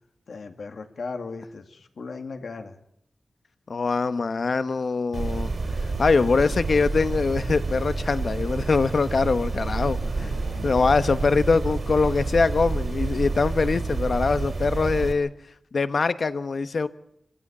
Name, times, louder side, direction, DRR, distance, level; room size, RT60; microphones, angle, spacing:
voice 1, 0.3-2.8 9.8-10.8, left 4 dB, 85° left, 6 dB, 2.3 m, -38 dB
voice 2, 3.7-15.3 15.7-16.9, left 4 dB, 60° left, 12 dB, 1.1 m, -23 dB
sound 1, 5.1-15.1, right 3 dB, 55° right, 3.1 m, -29 dB
25.0 x 15.5 x 8.7 m, 0.75 s
wide cardioid pair, 125°, 0 cm